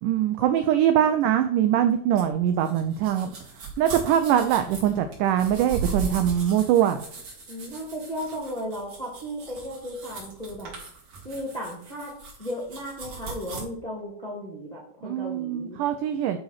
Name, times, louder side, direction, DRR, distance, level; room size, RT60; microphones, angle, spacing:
voice 1, 0.0-3.3 3.8-7.0 15.0-16.4, right 10 dB, 85° right, 8 dB, 1.9 m, -22 dB
sound 1, 2.2-13.6, right 4 dB, 45° right, 3.8 m, -38 dB
voice 2, 7.5-10.7 11.2-15.8, equal, 15° left, -4 dB, 1.6 m, -35 dB
10.5 x 4.1 x 5.7 m, 0.63 s
omnidirectional pair, 4.4 m